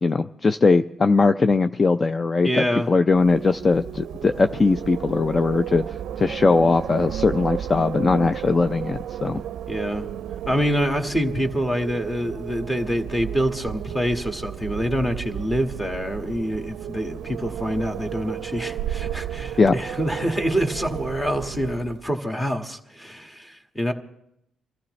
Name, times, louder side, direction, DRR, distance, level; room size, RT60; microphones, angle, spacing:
voice 1, 0.0-9.4 19.6-19.7, left 3 dB, 30° left, 0.4 m, -20 dB
voice 2, 2.4-2.9 9.7-10.1 10.5-23.9, equal, 10° left, 1.7 m, -26 dB
Wind, 3.1-22.1, right 10 dB, 75° right, 0.4 m, -33 dB
26.0 x 14.5 x 3.2 m
cardioid pair, 90°, 0 cm